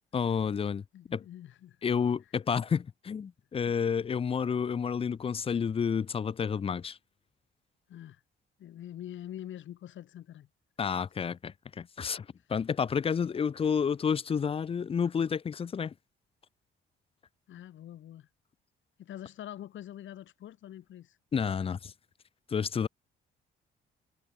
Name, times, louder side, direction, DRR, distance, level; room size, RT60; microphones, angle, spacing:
voice 1, 0.1-0.8 1.1-1.2 1.8-7.0 10.8-15.9 21.3-21.9 22.5-22.9, left 6 dB, 30° left, 0.4 m, -30 dB
voice 2, 0.9-1.8 7.9-8.2 8.6-10.5 17.5-18.3 19.0-21.2, left 11 dB, 75° left, 4.7 m, -45 dB
cardioid pair, 90°, 20 cm